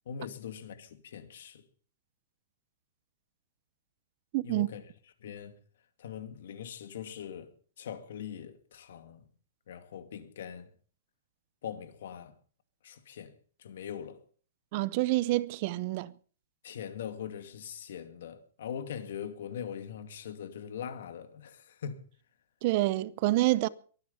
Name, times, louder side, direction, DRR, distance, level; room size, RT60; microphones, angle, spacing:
voice 1, 0.1-1.6 4.4-4.9 5.2-5.6 6.0-7.5 7.8-9.3 9.7-10.7 11.6-12.3 12.8-13.3 13.6-14.2 16.6-22.0, left 8 dB, 65° left, 2.4 m, -41 dB
voice 2, 4.3-4.7 14.7-16.1 22.6-23.7, right 18 dB, 35° right, 0.6 m, -27 dB
23.0 x 9.6 x 5.6 m
hypercardioid pair, 165°, 0 cm